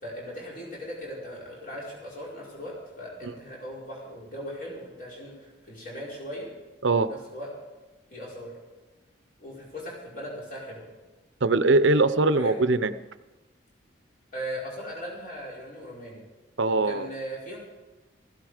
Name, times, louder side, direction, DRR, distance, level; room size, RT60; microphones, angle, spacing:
voice 1, 0.0-6.5 7.1-7.5 8.1-8.5 9.4-10.8 12.3-12.6 14.3-16.3 16.7-17.6, equal, 45° left, -5 dB, 5.3 m, -38 dB
voice 2, 11.4-12.9 16.6-17.1, right 3 dB, 80° right, 12 dB, 0.8 m, -21 dB
16.0 x 15.5 x 5.0 m, 1.1 s
head